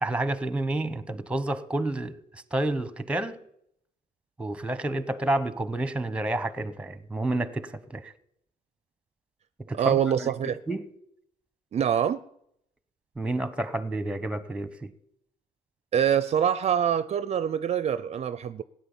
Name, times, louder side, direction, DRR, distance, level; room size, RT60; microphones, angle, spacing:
voice 1, 0.0-2.2 2.5-3.4 4.4-8.1 9.7-10.3 10.7-10.8 13.2-14.9, right 2 dB, 5° right, 0.9 m, -29 dB
voice 2, 9.8-10.6 11.7-12.2 15.9-18.6, right 9 dB, 40° right, 0.5 m, -25 dB
16.0 x 9.4 x 7.1 m
cardioid pair, 110°, 17 cm